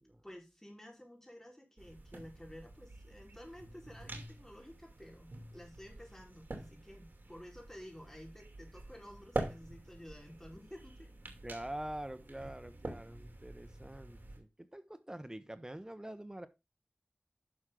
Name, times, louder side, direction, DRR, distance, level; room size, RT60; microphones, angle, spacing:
voice 1, 0.2-11.1, equal, 15° left, 1 dB, 4.6 m, -52 dB
sound 1, 1.8-14.4, right 2 dB, 75° right, 2.6 m, -46 dB
voice 2, 11.4-16.5, right 1 dB, 20° right, 12 dB, 1.0 m, -45 dB
11.0 x 6.3 x 3.8 m, 0.24 s
wide cardioid pair, 50°, 3 cm